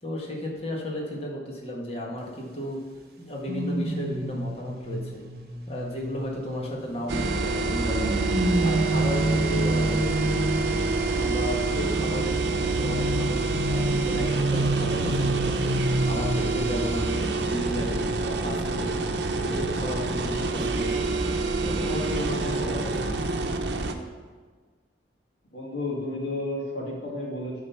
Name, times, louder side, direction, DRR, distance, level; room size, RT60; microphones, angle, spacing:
voice 1, 0.0-2.8 3.2-5.2 5.7-8.2 8.6-10.3 11.1-15.6 16.1-18.9 19.4-21.1 21.6-23.2, left 1 dB, 35° left, -1 dB, 1.5 m, -34 dB
sound 1, 3.5-7.1 7.7-10.9 12.0-17.2 17.5-17.7, right 1 dB, 55° right, 1.0 m, -29 dB
sound 2, 7.1-23.9, right 3 dB, 80° right, 0.7 m, -27 dB
voice 2, 25.5-27.6, left 2 dB, 70° left, -3 dB, 2.2 m, -32 dB
10.5 x 4.0 x 5.7 m, 1.4 s
head